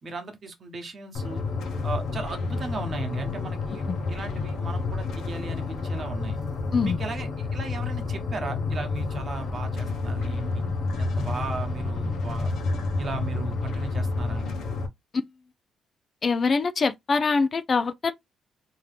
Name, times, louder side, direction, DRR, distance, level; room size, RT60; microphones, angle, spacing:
voice 1, 0.0-1.4 1.8-6.4 6.8-10.6 11.0-12.5 13.0-14.5, right 3 dB, 45° right, 1.2 m, -36 dB
sound 1, 1.1-14.9, left 3 dB, 75° left, 1.0 m, -29 dB
voice 2, 16.2-18.1, left 4 dB, 40° left, 0.5 m, -24 dB
3.7 x 2.8 x 3.3 m
cardioid pair, 90°, 0 cm